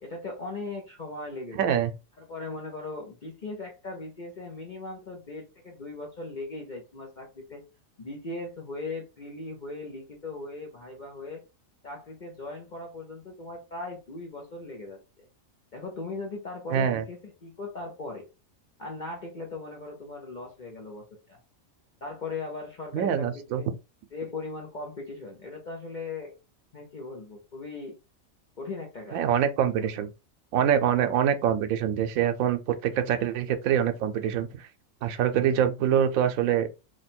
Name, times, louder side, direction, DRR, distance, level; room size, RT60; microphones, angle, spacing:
voice 1, 0.0-1.7 2.2-7.6 8.0-11.4 11.8-15.2 15.7-18.3 18.8-21.4 22.0-23.7 24.1-26.3 26.7-28.0 28.6-29.2 29.8-30.0, left 3 dB, 45° left, 0.7 m, -38 dB
voice 2, 1.6-1.9 16.7-17.0 22.9-23.6 29.1-30.1 30.5-34.7 35.0-36.7, right 9 dB, 85° right, 1.0 m, -25 dB
3.2 x 2.2 x 4.2 m
omnidirectional pair, 1.4 m